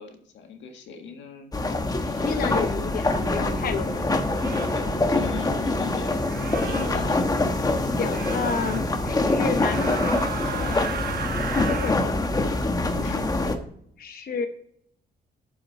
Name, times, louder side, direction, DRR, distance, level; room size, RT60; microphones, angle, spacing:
voice 1, 0.0-1.5 2.0-2.4 2.8-3.7 4.7-6.2 6.6-7.3 10.4-10.9 12.9-13.3, left 6 dB, 90° left, 5 dB, 1.6 m, -39 dB
sound 1, 1.5-13.6, left 2 dB, 20° left, 1.0 m, -25 dB
voice 2, 2.2-4.1 8.0-10.0 11.5-12.2 14.0-14.5, left 6 dB, 55° left, 6 dB, 0.8 m, -30 dB
sound 2, 2.9-3.1 4.3-4.8 6.2-6.9 8.1-8.8 9.6-12.0, right 7 dB, 60° right, 1.1 m, -34 dB
sound 3, 3.1-10.0, right 1 dB, 5° right, 2.9 m, -35 dB
8.7 x 7.2 x 4.1 m, 0.67 s
cardioid pair, 120°, 18 cm